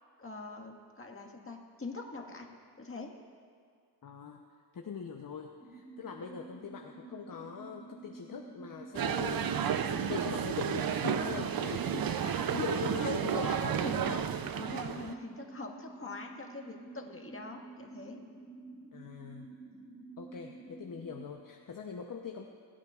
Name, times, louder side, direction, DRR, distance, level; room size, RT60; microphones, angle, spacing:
voice 1, 0.2-2.5 2.8-3.1 13.0-14.2 14.6-18.2, left 3 dB, 30° left, 1 dB, 1.7 m, -42 dB
voice 2, 4.0-4.4 4.7-13.5 18.9-19.5 20.2-22.4, left 6 dB, 50° left, 2 dB, 0.9 m, -42 dB
sound 1, 5.6-21.3, right 3 dB, 10° right, 1.9 m, -50 dB
sound 2, 8.9-15.1, right 8 dB, 55° right, 0.6 m, -32 dB
20.5 x 10.0 x 2.5 m, 2.2 s
cardioid pair, 60°, 43 cm